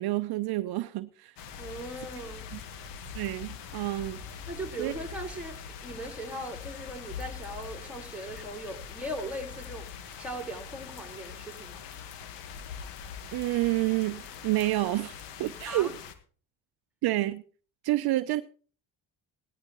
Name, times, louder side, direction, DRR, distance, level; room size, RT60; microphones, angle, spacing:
voice 1, 0.0-1.3 2.5-2.6 3.1-4.2 4.8-4.9 13.3-15.9 17.0-17.4 17.8-18.4, right 17 dB, 65° right, 0.7 m, -29 dB
sound 1, 1.4-16.1, left 7 dB, 80° left, 1.6 m, -43 dB
voice 2, 1.6-2.5 4.5-5.6 5.8-9.9 10.2-11.8 15.7-15.9, right 1 dB, 5° right, 4.5 m, -39 dB
18.0 x 13.0 x 3.1 m
supercardioid pair, 70°, 41 cm